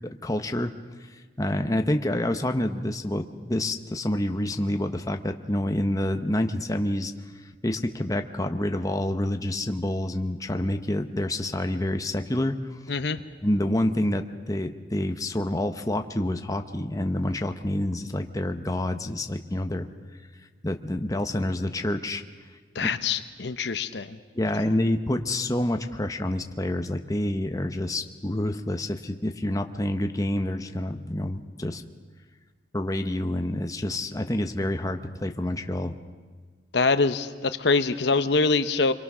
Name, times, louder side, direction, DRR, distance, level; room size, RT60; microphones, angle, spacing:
voice 1, 0.2-0.7 1.4-7.1 7.6-12.5 13.4-19.9 20.6-22.2 22.8-22.9 24.3-31.8 32.7-35.9, left 1 dB, 20° left, 6 dB, 0.9 m, -27 dB
voice 2, 12.9-13.2 22.7-24.2 36.7-38.9, left 4 dB, 65° left, 10 dB, 0.8 m, -24 dB
27.5 x 22.5 x 6.2 m, 1.5 s
head